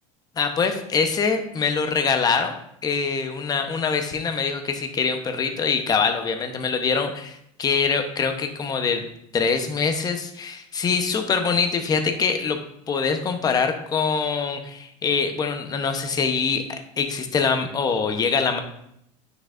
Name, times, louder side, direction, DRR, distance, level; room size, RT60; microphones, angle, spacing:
voice 1, 0.4-2.5 2.8-9.1 9.3-12.6 12.9-18.6, left 5 dB, 25° left, 6 dB, 0.8 m, -24 dB
9.4 x 6.4 x 2.5 m, 0.75 s
supercardioid pair, 135°, 16 cm